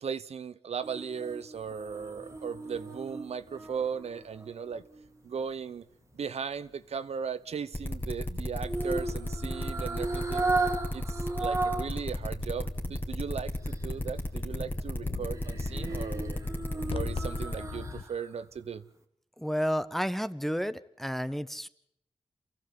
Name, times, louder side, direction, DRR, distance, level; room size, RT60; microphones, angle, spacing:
voice 1, 0.0-4.8 5.2-5.8 6.1-10.5 10.9-16.4 16.9-18.9, right 6 dB, 90° right, 14 dB, 0.8 m, -37 dB
sound 1, 0.8-5.1 8.6-12.0 12.4-12.5 15.3-18.2 18.6-18.7, right 3 dB, 30° right, 1.8 m, -35 dB
sound 2, 1.5-6.2 6.6-6.8 7.1-9.0 9.3-9.4 9.7-9.9 10.6-18.0, left 5 dB, 60° left, 0.9 m, -44 dB
sound 3, 7.7-17.5, left 1 dB, 20° left, 2.2 m, -33 dB
voice 2, 19.4-21.7, equal, ahead, 13 dB, 0.8 m, -31 dB
28.0 x 15.5 x 7.6 m, 0.73 s
wide cardioid pair, 120°, 11 cm